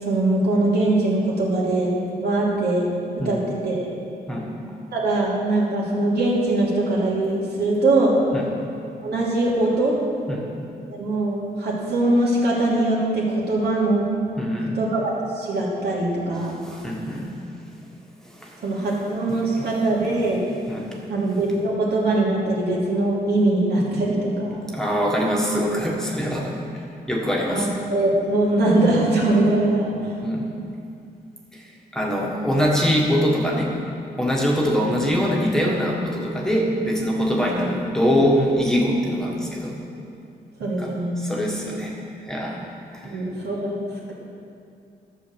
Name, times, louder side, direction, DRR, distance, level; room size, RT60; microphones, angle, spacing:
voice 1, 0.0-2.8 3.2-3.9 4.9-8.1 9.0-10.0 10.9-14.0 14.7-16.6 18.6-20.4 21.1-24.6 27.5-30.1 40.6-41.1 43.0-43.8, right 2 dB, 70° right, -5 dB, 2.9 m, -22 dB
voice 2, 14.4-14.8 16.6-17.3 18.3-18.6 19.3-19.8 20.7-21.0 24.7-27.7 30.2-30.5 31.5-33.7 34.2-39.8 40.6-42.0 42.3-42.6 42.9-43.2, equal, 5° left, -3 dB, 1.5 m, -23 dB
12.0 x 6.9 x 6.8 m, 2.5 s
cardioid pair, 110°, 17 cm